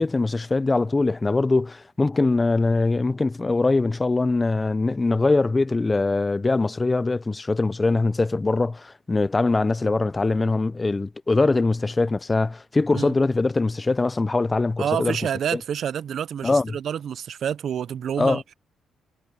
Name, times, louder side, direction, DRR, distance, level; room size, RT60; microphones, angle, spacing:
voice 1, 0.0-15.2 15.5-15.6 16.4-16.8 18.2-18.4, left 3 dB, 20° left, 0.4 m, -22 dB
voice 2, 14.8-18.5, right 9 dB, 65° right, 0.5 m, -28 dB
cardioid pair, 90°, 0 cm